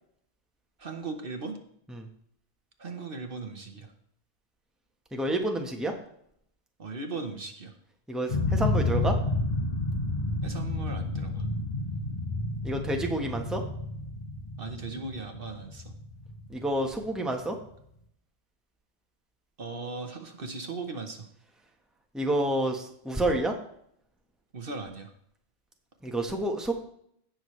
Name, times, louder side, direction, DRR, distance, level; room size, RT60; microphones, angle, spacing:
voice 1, 0.8-1.6 2.8-3.9 6.8-7.7 10.4-11.5 14.6-15.9 19.6-21.3 24.5-25.1, right 3 dB, 55° right, 5 dB, 1.2 m, -38 dB
voice 2, 5.1-5.9 8.1-9.1 12.6-13.6 16.5-17.5 22.1-23.5 26.0-26.7, right 1 dB, ahead, 2 dB, 1.1 m, -29 dB
sound 1, 8.3-17.1, left 2 dB, 40° left, 1.1 m, -30 dB
17.0 x 6.3 x 3.2 m, 0.69 s
omnidirectional pair, 1.1 m